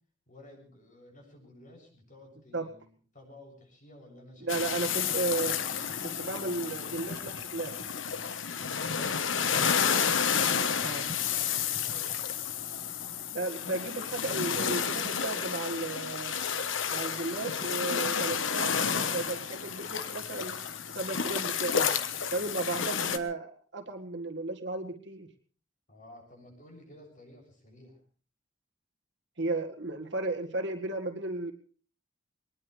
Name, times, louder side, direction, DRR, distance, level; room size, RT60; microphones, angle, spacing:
voice 1, 0.3-4.7 10.8-12.3 25.9-28.0, left 1 dB, 45° left, 1 dB, 7.4 m, -53 dB
voice 2, 4.4-5.6 6.0-7.8 10.8-11.1 13.3-16.4 16.9-20.6 20.9-21.9 22.3-25.3 29.4-31.5, right 2 dB, 65° right, 3 dB, 1.9 m, -34 dB
sound 1, 4.5-23.2, left 7 dB, 85° left, 1.2 m, -31 dB
22.0 x 20.0 x 3.3 m, 0.40 s
head